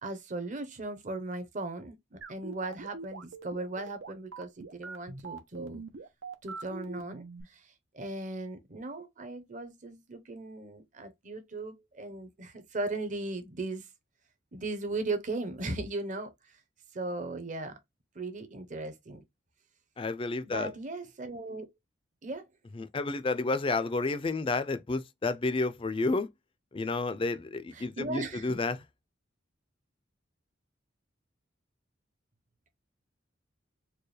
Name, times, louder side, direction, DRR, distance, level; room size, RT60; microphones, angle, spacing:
voice 1, 0.0-5.8 6.4-7.7 7.9-13.9 14.5-16.3 16.9-17.8 18.1-19.2 20.4-21.7 22.2-22.5 27.7-28.6, right 2 dB, 40° right, 0.8 m, -37 dB
sound 1, 2.2-7.4, right 4 dB, 85° right, 0.8 m, -42 dB
voice 2, 20.0-20.7 22.7-26.3 26.7-28.8, left 3 dB, 25° left, 0.4 m, -30 dB
4.5 x 2.3 x 3.2 m
head